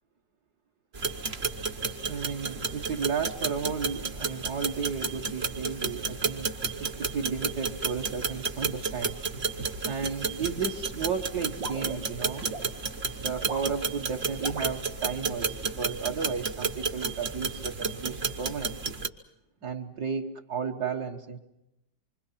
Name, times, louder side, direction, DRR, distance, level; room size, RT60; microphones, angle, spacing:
sound 1, 0.9-19.1, right 4 dB, 40° right, 1.1 m, -32 dB
voice 1, 2.0-6.5 6.8-12.4 13.2-18.9 19.6-21.4, right 6 dB, 60° right, 1 dB, 1.7 m, -33 dB
sound 2, 11.6-12.7 13.3-13.7 14.4-14.8, right 4 dB, 75° right, 2.6 m, -38 dB
26.5 x 25.0 x 5.7 m, 0.90 s
omnidirectional pair, 2.0 m